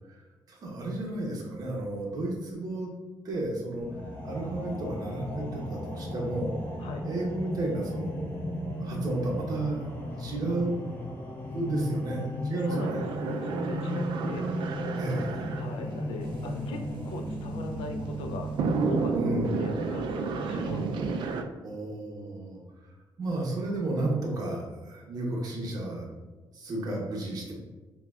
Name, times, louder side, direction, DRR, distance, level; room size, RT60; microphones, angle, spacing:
voice 1, 0.5-2.9 3.2-3.9 4.2-6.5 7.0-9.8 10.2-10.9 11.5-13.0 15.0-15.5 19.1-19.8 21.6-22.6 23.2-26.1 26.5-27.5, right 2 dB, 45° right, -1 dB, 0.8 m, -32 dB
sound 1, 3.8-18.8, left 1 dB, 20° left, 0.6 m, -35 dB
voice 2, 12.5-13.0 13.3-14.5 15.5-18.5 18.8-19.2 19.5-21.2, left 3 dB, 80° left, 5 dB, 0.4 m, -40 dB
sound 2, 12.7-21.4, right 4 dB, 65° right, 0.4 m, -32 dB
5.7 x 2.2 x 2.3 m, 1.2 s
cardioid pair, 150°, 9 cm